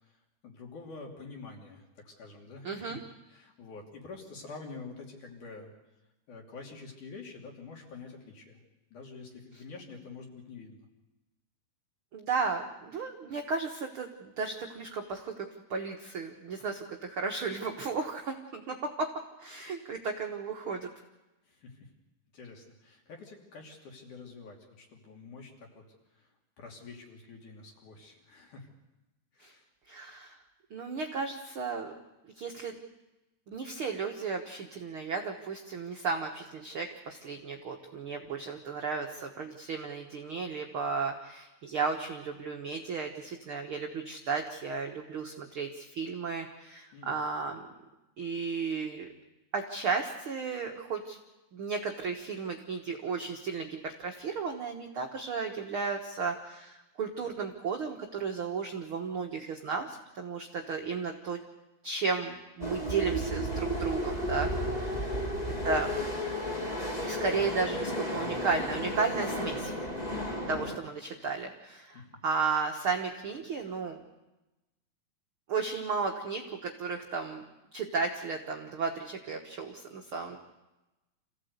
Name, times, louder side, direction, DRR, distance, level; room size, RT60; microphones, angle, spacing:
voice 1, 0.0-5.7 6.3-8.6 8.9-10.9 21.4-21.9 22.3-25.8 26.1-28.7 29.3-29.7 46.9-47.2 64.9-65.5 71.9-72.2, left 4 dB, 55° left, 1 dB, 4.2 m, -47 dB
voice 2, 2.6-3.0 12.1-20.9 29.4-29.5 29.9-30.4 30.7-31.9 32.4-32.8 33.5-47.7 48.2-49.1 49.5-51.2 51.5-61.4 61.8-65.2 65.6-65.9 67.0-69.7 70.5-74.0 75.5-77.5 77.7-80.4, right 4 dB, 75° right, 2 dB, 1.2 m, -34 dB
sound 1, 62.6-70.8, equal, 20° left, 1.0 m, -33 dB
27.0 x 16.0 x 8.2 m, 1.0 s
omnidirectional pair, 4.5 m